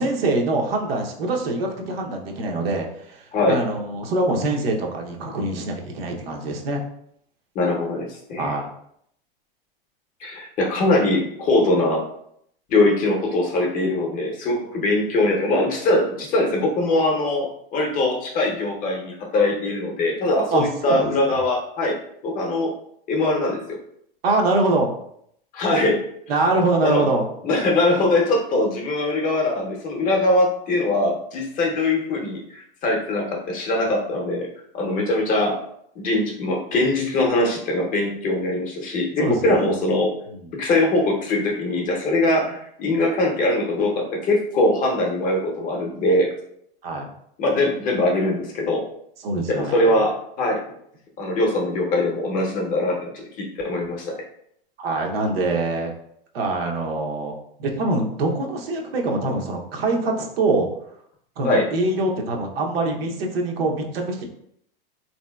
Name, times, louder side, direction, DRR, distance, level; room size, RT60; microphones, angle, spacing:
voice 1, 0.0-6.8 8.4-8.7 20.5-21.1 24.2-24.9 26.3-27.3 39.2-39.7 46.8-47.1 49.2-50.0 54.8-55.9 56.3-60.7 61.4-64.2, right 2 dB, 80° right, 1 dB, 0.7 m, -24 dB
voice 2, 3.3-3.6 7.5-8.5 10.2-12.1 12.7-22.0 22.2-22.7 23.1-23.6 25.5-26.1 26.8-27.1 27.4-34.5 34.7-35.6 36.0-40.1 40.6-46.3 47.4-48.8 49.5-50.6 51.2-54.1 61.4-61.7, left 2 dB, 30° left, 0 dB, 0.6 m, -22 dB
2.9 x 2.7 x 2.2 m, 0.70 s
hypercardioid pair, 130°, 29 cm